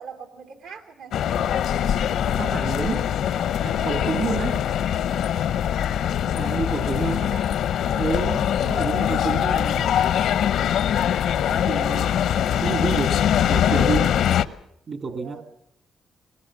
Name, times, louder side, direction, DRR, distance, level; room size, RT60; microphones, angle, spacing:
voice 1, 0.0-1.6 7.2-7.6 11.7-12.0 12.5-13.9 15.2-15.4, right 6 dB, 85° right, 5 dB, 3.0 m, -42 dB
sound 1, 1.1-14.4, left 9 dB, 80° left, 0.7 m, -22 dB
voice 2, 2.3-3.1 3.6-4.7 6.3-7.2 7.9-9.9 11.4-12.3 12.6-13.2 13.4-14.0 14.9-15.4, right 4 dB, 50° right, 8 dB, 2.0 m, -29 dB
21.0 x 20.0 x 7.3 m, 0.74 s
cardioid pair, 100°, 0 cm